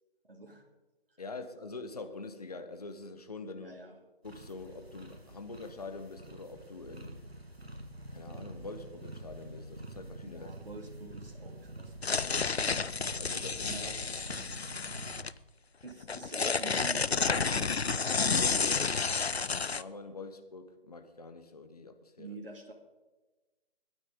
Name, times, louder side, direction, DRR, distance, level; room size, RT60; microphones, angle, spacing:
voice 1, 0.2-0.6 1.1-1.2 3.6-4.0 10.2-12.6 13.7-14.3 15.8-17.8 22.2-22.7, right 2 dB, 65° right, 1 dB, 2.5 m, -47 dB
voice 2, 1.2-3.8 4.2-7.2 8.1-10.5 13.1-13.9 18.2-22.4, left 3 dB, 40° left, 8 dB, 1.3 m, -45 dB
sound 1, 4.2-15.2, right 1 dB, 85° right, 2.2 m, -47 dB
sound 2, 12.0-15.3 15.9-19.8, left 5 dB, 85° left, 0.6 m, -30 dB
21.5 x 8.8 x 5.2 m, 1.2 s
figure-of-eight pair, 155°, 31 cm